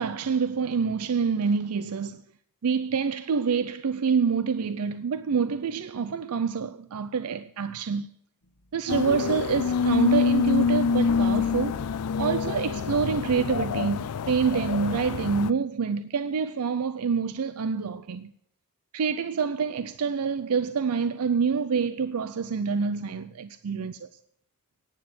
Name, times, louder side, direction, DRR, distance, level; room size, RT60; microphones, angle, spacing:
voice 1, 0.0-2.2 2.6-8.1 8.7-11.8 12.2-18.3 18.9-24.1, right 5 dB, 80° right, 0.5 m, -27 dB
sound 1, 8.4-8.7 11.1-13.7, left 2 dB, 70° left, 1.0 m, -42 dB
sound 2, 8.9-15.5, left 5 dB, 85° left, 0.4 m, -26 dB
11.0 x 9.9 x 7.6 m
head